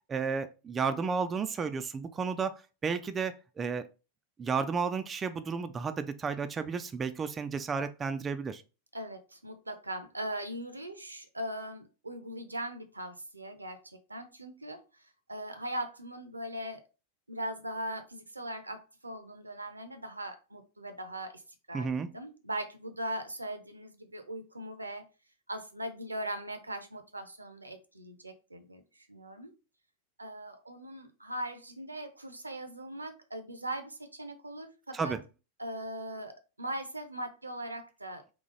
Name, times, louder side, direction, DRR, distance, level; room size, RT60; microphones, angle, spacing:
voice 1, 0.1-3.9 4.4-8.6 21.7-22.1 34.9-35.2, right 5 dB, 20° right, 10 dB, 0.4 m, -32 dB
voice 2, 8.9-15.0 15.3-16.8 17.3-21.4 21.7-25.0 25.5-29.5 30.2-35.1 35.6-38.3, right 1 dB, 80° right, 8 dB, 0.7 m, -40 dB
3.9 x 3.1 x 3.8 m, 0.31 s
figure-of-eight pair, 90°, 0 cm